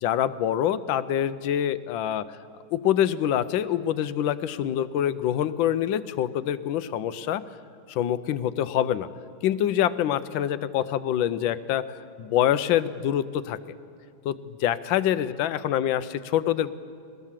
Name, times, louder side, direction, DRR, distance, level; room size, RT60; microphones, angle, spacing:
voice 1, 0.0-2.3 2.7-7.4 7.9-9.1 9.4-11.8 12.2-13.6 14.2-16.7, left 11 dB, 90° left, 14 dB, 1.4 m, -25 dB
21.5 x 17.5 x 7.4 m, 2.3 s
omnidirectional pair, 2.0 m